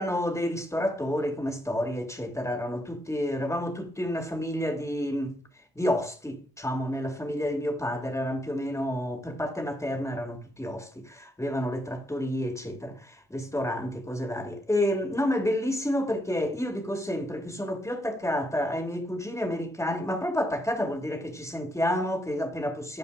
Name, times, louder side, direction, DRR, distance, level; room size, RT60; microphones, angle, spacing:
voice 1, 0.0-5.4 5.8-23.0, left 1 dB, 5° left, 2.3 m, -30 dB
12.0 x 5.1 x 2.4 m
figure-of-eight pair, 45°, 43 cm